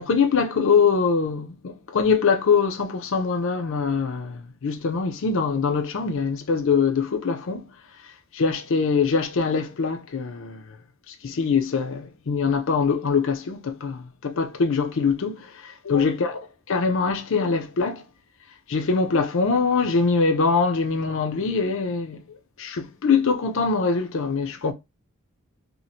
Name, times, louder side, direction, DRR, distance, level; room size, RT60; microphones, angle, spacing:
voice 1, 0.0-7.7 8.3-10.7 11.1-16.4 16.7-18.0 18.7-22.2 22.6-24.7, left 5 dB, 65° left, 0.5 m, -23 dB
3.0 x 2.4 x 2.7 m
head